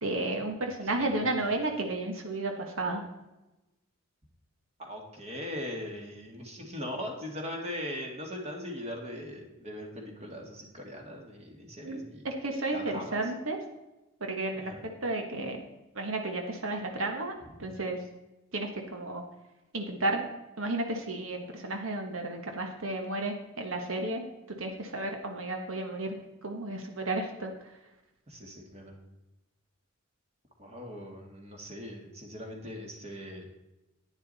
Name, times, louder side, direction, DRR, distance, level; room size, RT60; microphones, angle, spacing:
voice 1, 0.0-3.0 11.8-13.6 14.2-14.7 15.0-15.6 15.9-17.3 17.6-18.0 18.5-19.2 19.7-20.2 20.6-24.2 24.6-26.2 26.4-27.5, right 2 dB, 70° right, 4 dB, 1.4 m, -32 dB
voice 2, 0.9-1.4 4.8-12.2 12.7-13.2 14.5-14.9 28.3-29.0 30.6-33.5, left 1 dB, 30° right, 1 dB, 1.9 m, -40 dB
11.0 x 9.7 x 4.1 m, 1.0 s
head